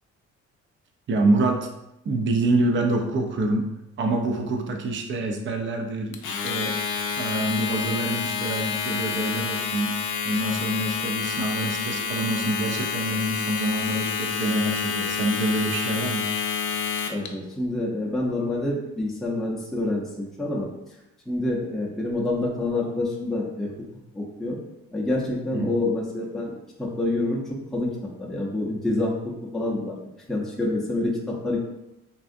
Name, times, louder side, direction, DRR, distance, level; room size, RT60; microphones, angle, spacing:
voice 1, 1.1-1.7 2.0-3.6 4.0-6.8 7.2-10.0 10.2-16.3 25.5-25.7, right 2 dB, 40° right, 4 dB, 0.5 m, -26 dB
Domestic sounds home sounds, 6.1-17.3, left 6 dB, 75° left, 0.5 m, -28 dB
voice 2, 17.1-20.7 21.3-23.7 24.1-24.6 24.9-26.5 26.8-27.4 27.7-27.9 28.2-29.1 29.5-30.0 30.3-31.6, left 2 dB, ahead, -4 dB, 0.6 m, -27 dB
3.6 x 2.4 x 2.5 m, 0.91 s
cardioid pair, 90°, 30 cm